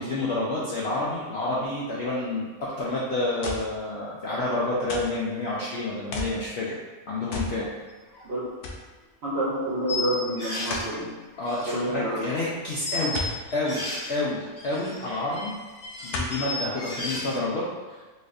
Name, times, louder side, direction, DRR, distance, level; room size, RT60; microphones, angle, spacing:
voice 1, 0.0-6.8 7.1-7.7 11.4-15.5 16.0-18.0, left 2 dB, 65° left, -6 dB, 0.6 m, -29 dB
sound 1, 3.4-3.8 4.9-5.2 6.1-6.4 7.3-7.6 8.0-8.1 8.6-8.9 10.7-10.9 13.1-13.4 14.9-15.0 16.1-16.4 17.1-17.2, left 2 dB, 85° left, 1.1 m, -32 dB
sound 2, 8.1-8.2 8.7-8.8 9.9-10.9 11.3-12.5 12.8-14.2 14.6-17.4, left 2 dB, 50° left, 1.3 m, -34 dB
voice 2, 9.2-11.1 11.7-12.2, right 1 dB, 55° right, -6 dB, 0.9 m, -28 dB
4.0 x 2.5 x 2.5 m, 1.3 s
omnidirectional pair, 1.6 m